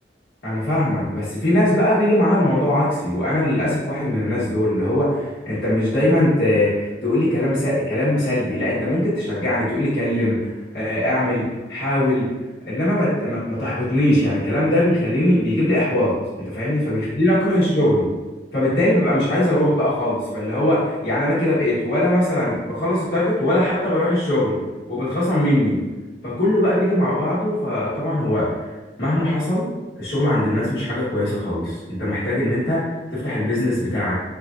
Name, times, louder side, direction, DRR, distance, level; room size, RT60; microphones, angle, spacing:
voice 1, 0.4-10.5 10.7-12.3 12.7-16.1 16.4-18.1 18.5-24.6 24.9-25.8 26.2-28.5 29.0-29.7 30.0-32.8 33.1-34.1, left 1 dB, 60° left, -12 dB, 1.2 m, -20 dB
3.3 x 2.5 x 3.6 m, 1.2 s
head